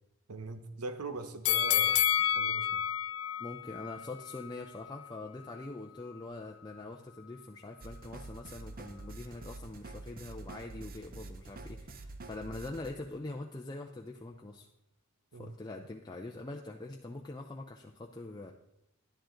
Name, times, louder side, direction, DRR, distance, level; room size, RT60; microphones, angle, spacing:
voice 1, 0.3-2.8 15.3-15.5, right 3 dB, 85° right, 0.8 m, -41 dB
sound 1, 1.4-4.5 5.0-5.1, left 10 dB, 65° left, 0.4 m, -29 dB
voice 2, 3.4-14.7 15.4-18.5, left 2 dB, 20° left, 0.5 m, -43 dB
sound 2, 7.8-12.9, right 2 dB, 40° right, 0.7 m, -47 dB
11.5 x 10.5 x 3.8 m
head